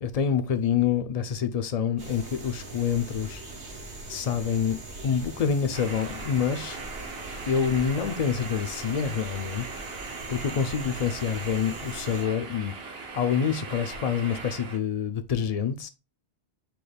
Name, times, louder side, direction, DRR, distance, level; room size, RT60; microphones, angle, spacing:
voice 1, 0.0-3.4 4.1-4.8 5.0-6.8 7.5-9.7 10.3-12.7 13.1-15.9, left 7 dB, 60° left, 0.4 m, -27 dB
sound 1, 2.0-12.2, right 2 dB, 80° right, 1.6 m, -42 dB
sound 2, 5.7-14.8, right 4 dB, 65° right, 1.0 m, -39 dB
5.9 x 2.3 x 3.3 m
omnidirectional pair, 1.1 m